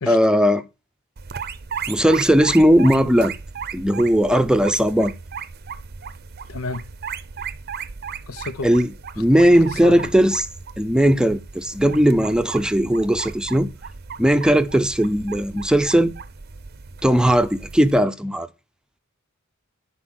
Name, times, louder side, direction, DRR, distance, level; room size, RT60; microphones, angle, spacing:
voice 1, 0.1-0.6 1.9-3.3 3.7-5.1 8.6-8.9 9.2-10.5 10.8-13.7 14.2-16.1 17.0-18.5, equal, 5° right, 0.6 m, -17 dB
sound 1, 1.2-18.0, right 6 dB, 50° right, 0.7 m, -35 dB
voice 2, 6.5-6.9 8.3-8.7 9.2-10.0, left 3 dB, 75° left, 0.6 m, -31 dB
10.0 x 4.5 x 6.2 m
head